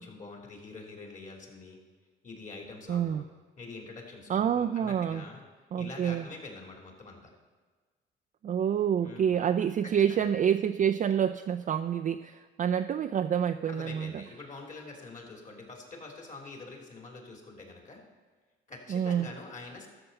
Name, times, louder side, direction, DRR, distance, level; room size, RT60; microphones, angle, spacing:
voice 1, 0.0-1.8 2.2-3.2 3.6-5.4 5.8-7.3 9.0-9.3 10.1-10.2 13.7-18.0 18.7-19.9, left 3 dB, 40° left, 1 dB, 3.0 m, -45 dB
voice 2, 2.9-3.2 4.3-5.2 5.7-6.2 8.4-14.2 18.9-19.3, right 8 dB, 40° right, 7 dB, 0.4 m, -28 dB
13.0 x 6.8 x 5.4 m, 1.4 s
cardioid pair, 90°, 20 cm